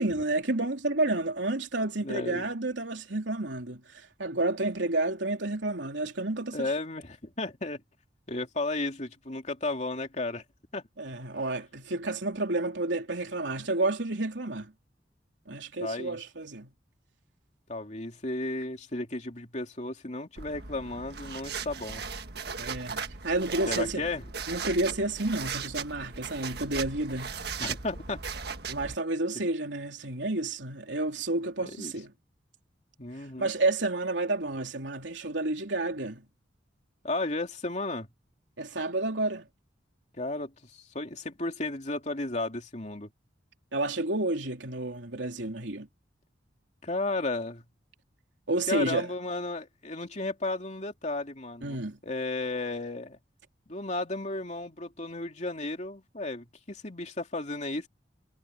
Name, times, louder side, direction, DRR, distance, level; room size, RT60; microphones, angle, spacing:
voice 1, 0.0-6.7 11.0-14.7 15.5-16.7 22.6-24.1 24.5-27.4 28.7-32.1 33.4-36.2 38.6-39.5 43.7-45.9 48.5-49.1 51.6-52.0, right 2 dB, 80° right, 3.3 m, -30 dB
voice 2, 2.0-2.5 6.5-7.8 8.3-10.4 10.7-10.8 15.8-16.2 17.7-22.0 23.7-24.2 27.6-28.2 31.6-31.9 33.0-33.5 37.0-38.1 40.2-43.1 46.8-47.6 48.7-53.2 53.7-57.9, left 2 dB, 40° left, 2.9 m, -34 dB
sound 1, 20.4-29.0, right 6 dB, 60° right, 1.6 m, -37 dB
head